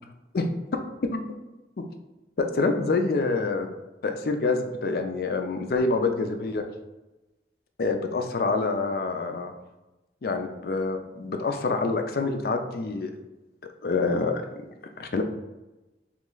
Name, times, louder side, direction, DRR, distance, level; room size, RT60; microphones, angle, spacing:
voice 1, 0.3-0.8 1.1-1.2 1.8-1.9 2.4-3.7 4.0-6.6 7.8-9.5 10.2-13.2 13.8-14.4 15.0-15.2, left 3 dB, 55° left, 6 dB, 0.4 m, -26 dB
3.2 x 3.1 x 3.8 m, 1.0 s
head